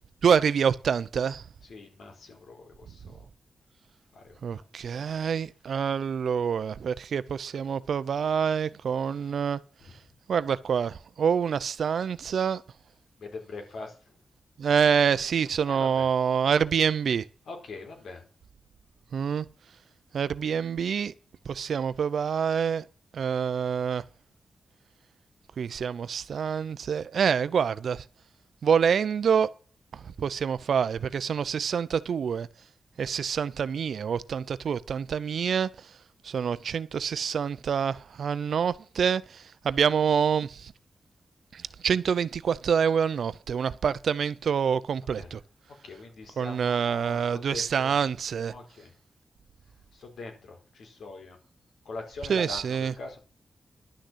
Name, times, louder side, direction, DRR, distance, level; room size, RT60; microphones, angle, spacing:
voice 1, 0.2-1.5 4.4-9.6 10.3-12.6 14.6-17.3 19.1-19.5 20.1-21.1 21.5-22.8 23.1-24.0 25.6-28.0 28.6-29.5 29.9-32.5 33.0-35.9 36.2-40.7 41.5-45.4 46.4-48.5 52.3-52.9, right 7 dB, 80° right, 0.7 m, -26 dB
voice 2, 1.7-3.3 4.1-4.6 9.8-9.9 13.2-14.1 15.6-16.1 17.5-18.3 45.2-45.3 45.8-48.0 48.5-48.9 49.9-51.4 51.8-53.2, left 3 dB, 85° left, 4.4 m, -42 dB
11.5 x 6.5 x 7.5 m
wide cardioid pair, 140°, 0 cm